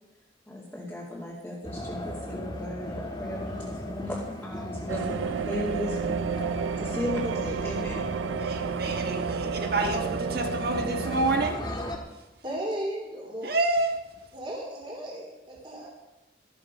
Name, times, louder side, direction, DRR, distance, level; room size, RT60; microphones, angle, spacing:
voice 1, 0.5-8.0, left 1 dB, 5° left, 2.4 m, -36 dB
sound 1, 1.6-12.0, left 1 dB, 25° left, 1.7 m, -37 dB
Guitar, 3.2-11.0, left 1 dB, 65° left, 1.8 m, -54 dB
sound 2, 4.9-11.5, right 6 dB, 90° right, 0.4 m, -31 dB
voice 2, 8.4-11.6 13.4-14.0, right 2 dB, 55° right, 1.6 m, -28 dB
voice 3, 12.4-13.5 14.3-15.9, right 1 dB, 25° right, 3.2 m, -35 dB
13.5 x 13.0 x 5.2 m
head